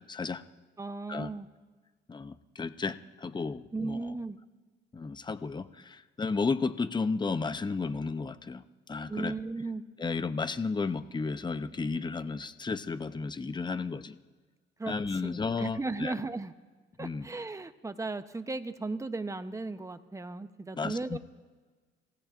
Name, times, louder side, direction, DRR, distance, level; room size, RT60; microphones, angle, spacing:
voice 1, 0.1-0.4 1.1-1.3 2.1-4.1 4.9-9.3 10.0-14.1 14.9-16.2 17.0-17.3 20.8-21.2, left 4 dB, 20° left, 12 dB, 0.7 m, -33 dB
voice 2, 0.8-1.5 3.7-4.4 9.1-9.8 14.8-14.9 15.2-16.5 17.0-21.2, right 3 dB, 15° right, 9 dB, 0.8 m, -36 dB
29.0 x 16.5 x 2.6 m, 1.4 s
cardioid pair, 90°, 20 cm